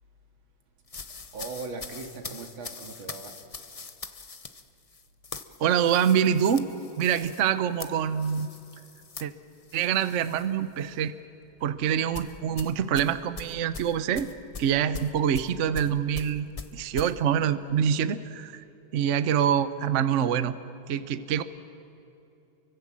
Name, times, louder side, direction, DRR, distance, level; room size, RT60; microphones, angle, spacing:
sound 1, 0.9-10.5 10.8-11.1 12.1-17.1, left 4 dB, 55° left, 0.4 m, -42 dB
voice 1, 1.3-3.3 9.1-9.3 11.6-11.9, right 4 dB, 85° right, 4 dB, 2.9 m, -40 dB
voice 2, 5.6-6.7 7.0-8.5 9.2-9.3 9.7-11.1 11.6-14.3 14.6-16.5 16.7-18.6 18.9-20.5 20.9-21.4, right 8 dB, 50° right, 12 dB, 0.9 m, -25 dB
29.5 x 24.0 x 7.6 m, 2.8 s
omnidirectional pair, 2.2 m